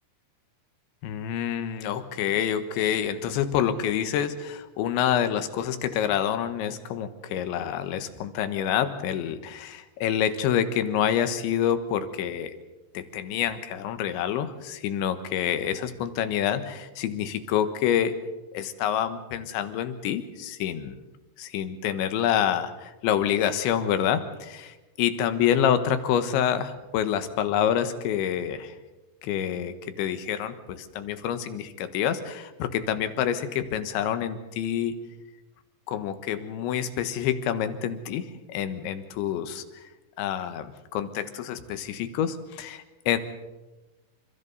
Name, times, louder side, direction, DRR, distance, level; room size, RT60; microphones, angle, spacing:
voice 1, 1.0-12.6 13.0-18.1 18.5-21.0 21.4-28.8 29.2-35.0 35.9-39.6 40.2-43.2, left 9 dB, 70° left, 10 dB, 3.4 m, -27 dB
29.5 x 27.0 x 4.1 m, 1.1 s
omnidirectional pair, 5.8 m